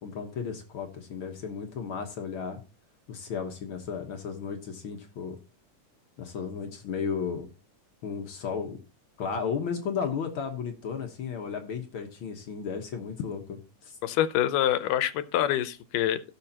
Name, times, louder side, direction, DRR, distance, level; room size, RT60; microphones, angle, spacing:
voice 1, 0.0-2.6 3.1-5.4 6.2-7.5 8.0-8.8 9.2-13.6 13.8-14.0, left 6 dB, 55° left, 1.5 m, -34 dB
voice 2, 14.0-16.2, left 12 dB, 85° left, 2.4 m, -26 dB
16.5 x 7.0 x 2.9 m
omnidirectional pair, 3.6 m